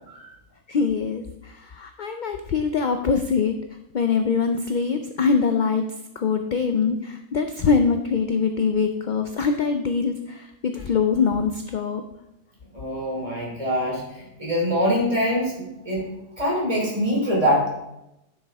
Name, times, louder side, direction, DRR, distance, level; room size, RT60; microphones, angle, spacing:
voice 1, 0.7-3.6 3.9-5.9 6.2-12.0, left 5 dB, 55° left, 6 dB, 0.5 m, -23 dB
voice 2, 12.7-16.1 16.4-17.7, equal, 25° right, -4 dB, 3.1 m, -24 dB
11.5 x 6.5 x 3.5 m, 0.87 s
omnidirectional pair, 1.4 m